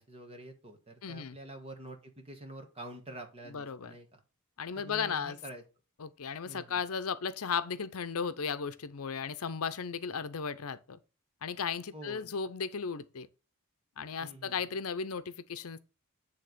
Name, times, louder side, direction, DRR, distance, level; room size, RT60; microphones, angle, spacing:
voice 1, 0.0-4.2 4.7-5.6 6.4-6.8 11.9-12.3 14.2-14.7, right 1 dB, 25° right, 1.6 m, -47 dB
voice 2, 1.0-1.4 3.5-3.9 4.6-5.4 6.0-11.0 11.4-13.3 14.0-15.8, left 6 dB, 75° left, 0.6 m, -35 dB
8.9 x 3.5 x 6.7 m
head